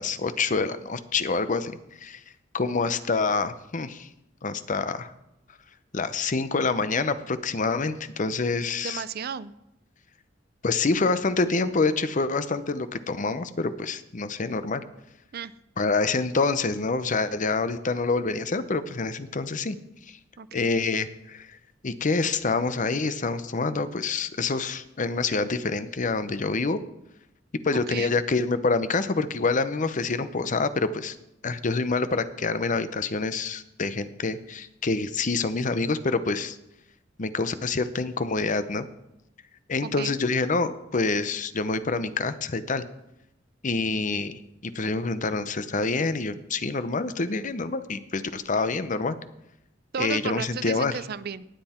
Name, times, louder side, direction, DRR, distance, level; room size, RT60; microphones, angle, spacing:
voice 1, 0.0-2.2 2.5-4.1 4.4-5.1 5.9-9.0 10.6-14.8 15.8-19.8 20.1-20.2 20.5-21.5 21.8-26.8 27.6-31.2 31.4-36.6 37.2-38.9 39.7-42.8 43.6-44.3 44.6-49.2 50.0-51.0, left 3 dB, 40° left, 12 dB, 0.7 m, -26 dB
voice 2, 8.8-9.5 15.3-15.5 20.4-20.7 27.9-28.2 39.8-40.2 49.9-51.5, right 6 dB, 55° right, 16 dB, 0.5 m, -34 dB
19.0 x 7.8 x 4.4 m, 0.86 s
head